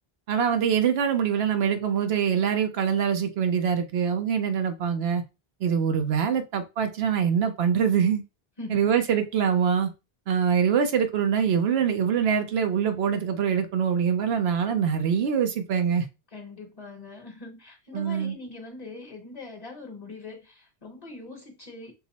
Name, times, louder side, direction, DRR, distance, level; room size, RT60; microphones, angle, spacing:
voice 1, 0.3-5.2 5.6-8.2 8.7-9.9 10.3-16.0 17.9-18.3, right 7 dB, 85° right, 0.9 m, -24 dB
voice 2, 8.6-8.9 16.3-21.9, left 3 dB, 40° left, 1.1 m, -42 dB
5.9 x 2.0 x 4.0 m
omnidirectional pair, 1.0 m